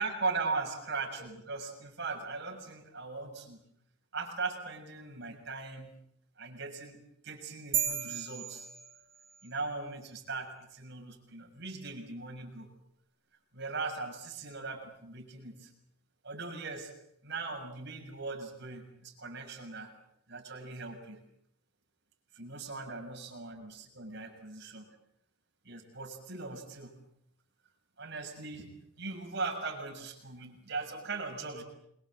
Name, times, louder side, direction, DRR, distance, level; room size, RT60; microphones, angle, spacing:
voice 1, 0.0-3.6 4.1-5.9 6.4-8.7 9.4-12.7 13.5-15.7 16.2-16.9 17.2-19.9 20.3-21.2 22.3-24.8 25.6-26.9 28.0-28.7 29.0-31.6, right 3 dB, 55° right, 2 dB, 6.8 m, -39 dB
sound 1, 7.7-9.5, right 9 dB, 25° right, 3.8 m, -34 dB
27.5 x 23.0 x 7.8 m, 0.74 s
head